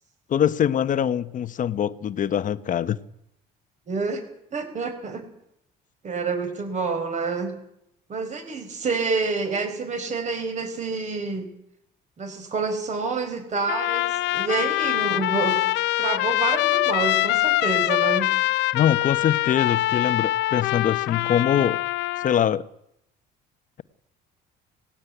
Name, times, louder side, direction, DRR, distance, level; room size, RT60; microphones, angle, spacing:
voice 1, 0.3-3.0 18.7-21.8 22.2-22.6, left 9 dB, 45° left, 1.1 m, -23 dB
voice 2, 3.9-4.2 4.5-5.2 6.0-7.5 8.1-11.5 12.2-15.7 16.0-18.3, right 4 dB, 40° right, 4.9 m, -28 dB
Trumpet, 13.7-22.5, left 17 dB, 80° left, 0.8 m, -24 dB
18.0 x 16.5 x 9.4 m
cardioid pair, 110°, 18 cm